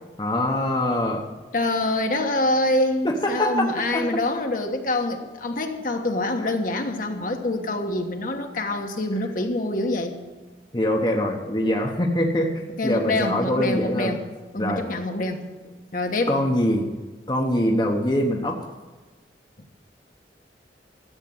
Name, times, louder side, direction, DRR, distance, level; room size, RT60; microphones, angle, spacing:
voice 1, 0.2-1.2 3.2-4.0 9.1-9.2 10.7-12.5 12.8-14.1 14.6-14.9 16.3-16.9 17.3-18.6, left 1 dB, 25° left, 1 dB, 1.0 m, -23 dB
voice 2, 1.5-10.2 12.8-14.2 14.5-16.3, left 2 dB, 50° left, 4 dB, 1.3 m, -26 dB
13.5 x 8.3 x 7.7 m, 1.2 s
head